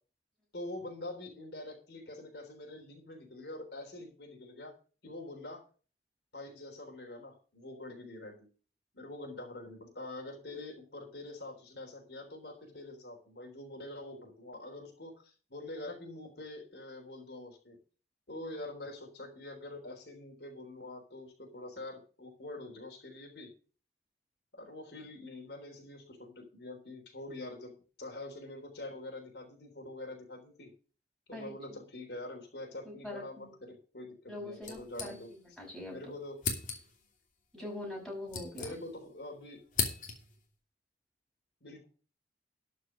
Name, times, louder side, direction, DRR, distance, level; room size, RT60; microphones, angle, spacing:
voice 1, 0.5-4.7 5.0-5.6 6.3-8.5 8.9-17.8 18.3-23.5 24.5-30.7 31.3-35.3 35.9-36.4 37.6-37.7 38.6-39.6 41.6-41.9, left 2 dB, 70° left, 1 dB, 3.6 m, -45 dB
voice 2, 32.9-33.6 34.3-36.0 37.5-38.8, left 1 dB, ahead, -3 dB, 5.9 m, -43 dB
sound 1, 34.6-35.6 35.9-36.0 36.4-37.1 37.9-39.2 39.4-40.4, left 5 dB, 45° left, 2.9 m, -37 dB
12.5 x 6.1 x 6.3 m, 0.38 s
head